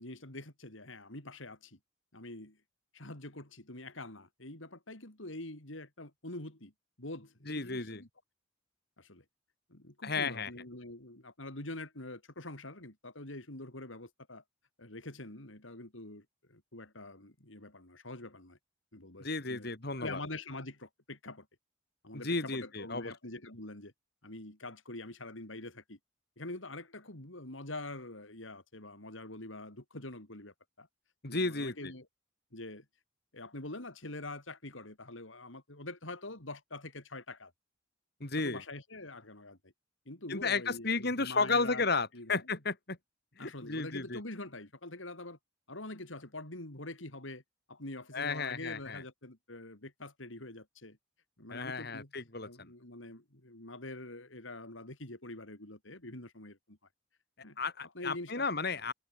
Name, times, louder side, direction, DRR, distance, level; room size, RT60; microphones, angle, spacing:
voice 1, 0.0-1.8 2.1-2.6 2.9-6.7 7.0-8.1 9.0-9.2 9.7-14.4 14.8-18.6 18.9-19.7 20.0-21.5 22.0-23.9 24.2-26.0 26.4-30.9 31.3-32.1 32.5-32.8 33.3-37.5 38.4-39.7 40.1-41.8 42.1-42.5 43.4-45.4 45.7-47.4 47.7-51.0 51.4-52.1 52.4-56.8 57.4-57.6 57.9-58.5, left 2 dB, 80° left, 4.6 m, -45 dB
voice 2, 7.5-8.0 10.0-10.5 19.2-20.2 22.1-23.1 31.2-31.9 38.2-38.6 40.3-43.0 43.4-44.2 48.1-49.0 51.5-52.5 57.6-58.9, left 3 dB, 55° left, 3.3 m, -33 dB
head